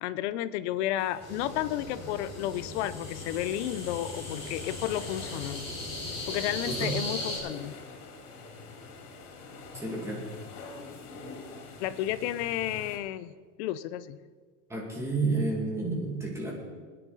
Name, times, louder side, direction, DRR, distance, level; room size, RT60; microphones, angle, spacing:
voice 1, 0.0-5.7 6.3-7.7 11.8-13.3 13.6-14.2, left 13 dB, 50° left, 15 dB, 0.7 m, -32 dB
sound 1, 1.0-13.0, left 4 dB, 70° left, 3.6 m, -46 dB
sound 2, 1.2-7.4, left 2 dB, 15° left, 4.4 m, -38 dB
voice 2, 6.6-7.0 9.7-10.3 14.7-16.5, right 3 dB, 5° right, -2 dB, 2.4 m, -30 dB
22.0 x 10.0 x 4.1 m, 1.5 s
supercardioid pair, 160°, 44 cm